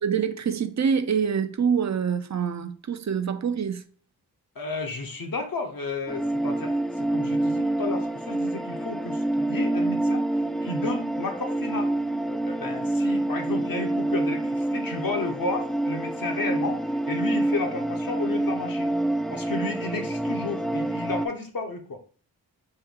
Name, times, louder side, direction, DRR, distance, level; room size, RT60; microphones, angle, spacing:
voice 1, 0.0-3.8, right 7 dB, 45° right, 0.6 m, -25 dB
voice 2, 4.5-10.3 10.6-11.9 12.3-18.9 19.3-22.0, left 3 dB, 55° left, 1.1 m, -32 dB
sound 1, 6.1-21.3, right 1 dB, ahead, 0.3 m, -27 dB
4.5 x 2.7 x 3.7 m
cardioid pair, 40°, 39 cm